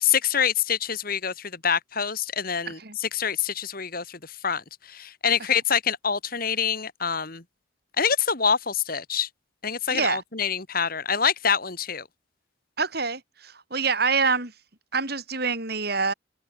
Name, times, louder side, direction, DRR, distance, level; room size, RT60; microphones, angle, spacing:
voice 1, 0.0-4.6 4.9-7.4 8.0-9.3 9.6-12.0, left 7 dB, 45° left, 2.1 m, -26 dB
voice 2, 2.7-3.0 9.9-10.2 12.8-14.5 14.9-16.1, right 4 dB, 50° right, 5.4 m, -26 dB
head